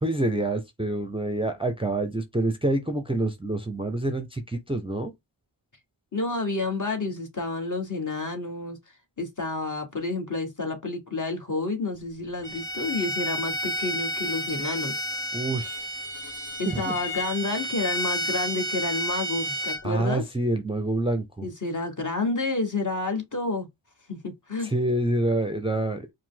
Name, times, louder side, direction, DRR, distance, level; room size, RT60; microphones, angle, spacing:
voice 1, 0.0-5.1 15.3-15.9 16.6-16.9 19.8-21.5 24.6-26.1, right 2 dB, 10° right, 0.6 m, -27 dB
voice 2, 6.1-8.8 9.2-15.0 16.6-20.2 21.4-23.7 24.1-24.2 24.5-24.7, left 3 dB, 40° left, 1.4 m, -29 dB
Bowed string instrument, 12.4-19.8, equal, 25° left, 1.9 m, -31 dB
4.8 x 2.2 x 3.8 m
wide cardioid pair, 70°, 46 cm